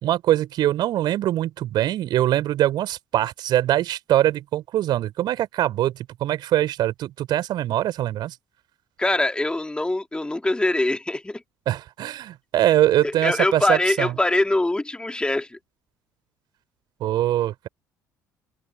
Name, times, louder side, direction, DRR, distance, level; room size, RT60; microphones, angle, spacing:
voice 1, 0.0-8.3 11.7-14.2 17.0-17.7, right 13 dB, 50° right, 4.0 m, -23 dB
voice 2, 9.0-11.4 13.0-15.6, left 2 dB, 10° left, 3.4 m, -23 dB
figure-of-eight pair, 55°, 9 cm